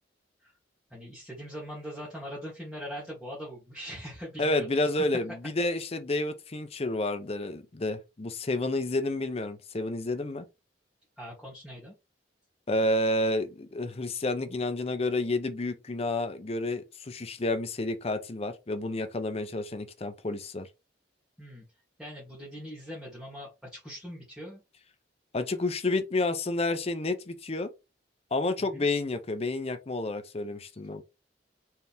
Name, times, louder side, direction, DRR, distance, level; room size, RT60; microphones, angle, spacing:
voice 1, 0.9-4.7 11.2-11.9 21.4-21.6 22.0-24.6 28.6-28.8, equal, ahead, 1.7 m, -41 dB
voice 2, 4.4-10.4 12.7-20.7 25.3-27.7 28.3-31.0, left 2 dB, 35° left, 0.6 m, -30 dB
4.5 x 3.4 x 3.5 m
head